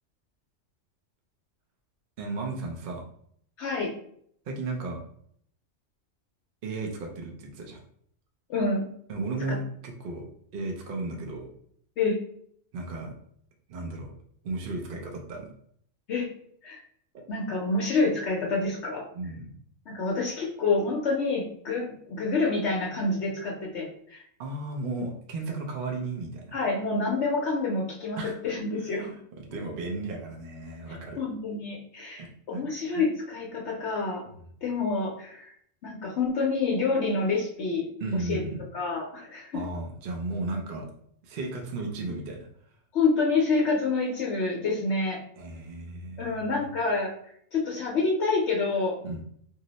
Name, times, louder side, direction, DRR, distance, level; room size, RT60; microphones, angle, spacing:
voice 1, 2.2-3.0 4.4-5.0 6.6-7.8 9.1-11.5 12.7-13.1 13.7-14.1 14.4-15.5 17.1-17.2 19.1-19.6 24.4-26.6 28.2-29.1 29.4-31.2 32.2-32.6 38.0-38.6 39.5-40.9 41.2-42.5 45.4-46.8 49.0-49.2, right 2 dB, 55° right, 1 dB, 0.6 m, -35 dB
voice 2, 3.6-3.9 8.5-8.9 9.5-9.6 12.0-12.2 16.1-16.3 16.6-16.8 17.3-19.0 19.9-24.2 26.5-29.1 31.2-34.2 34.6-35.5 35.8-37.8 38.3-38.4 38.7-39.6 42.9-45.2 46.2-47.1 47.5-49.0, left 3 dB, 65° left, -2 dB, 0.8 m, -27 dB
2.7 x 2.1 x 3.8 m, 0.65 s
omnidirectional pair, 1.4 m